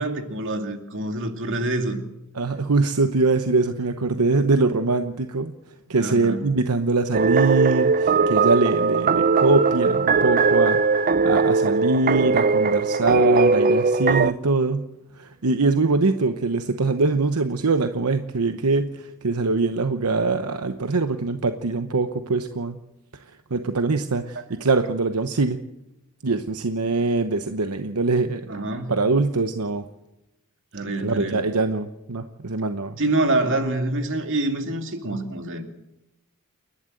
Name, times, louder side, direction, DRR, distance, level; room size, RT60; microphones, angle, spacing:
voice 1, 0.0-2.0 6.0-6.4 24.3-24.4 28.5-28.9 30.7-31.5 33.0-35.7, right 2 dB, 60° right, 5 dB, 2.5 m, -26 dB
voice 2, 2.4-5.5 5.9-10.8 11.2-14.9 15.2-22.8 23.5-25.6 26.2-28.4 28.9-29.8 31.0-32.9, right 3 dB, 80° right, 8 dB, 0.9 m, -23 dB
sound 1, 7.1-14.3, right 4 dB, 40° right, 0.6 m, -19 dB
29.0 x 11.5 x 7.8 m, 0.93 s
head